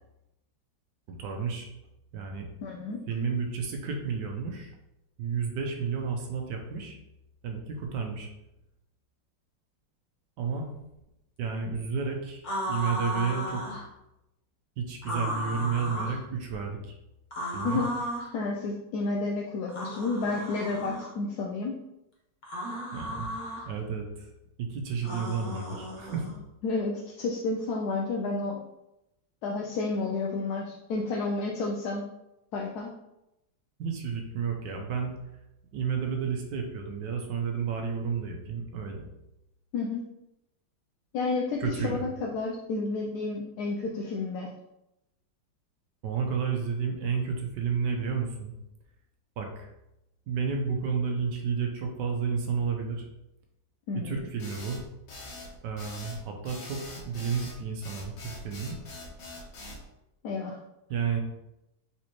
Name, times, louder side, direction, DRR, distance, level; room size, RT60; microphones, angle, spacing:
voice 1, 1.1-1.7 2.1-2.5 3.1-4.7 5.2-7.0 7.4-8.3 10.4-10.7 11.4-13.6 14.8-17.0 17.5-17.8 22.9-23.3 23.6-24.3 24.6-26.3 33.8-35.1 35.7-39.1 41.6-42.0 46.0-48.5 49.4-49.7 50.3-53.1 54.0-54.8 55.6-58.8 60.9-61.2, right 6 dB, 75° right, 3 dB, 1.3 m, -31 dB
voice 2, 2.6-3.0 17.6-17.9 18.3-21.8 26.6-28.6 29.4-32.0 32.5-32.9 39.7-40.0 41.1-44.5 53.9-54.3 60.2-60.6, left 3 dB, 70° left, -1 dB, 1.0 m, -31 dB
sound 1, 12.4-13.8 15.0-16.2 17.3-18.3 19.7-21.1 22.4-23.6 25.0-26.3, equal, 35° left, 0.9 m, -35 dB
sound 2, 54.4-59.8, left 2 dB, 90° left, 1.7 m, -43 dB
4.2 x 4.1 x 3.0 m, 0.89 s
omnidirectional pair, 2.0 m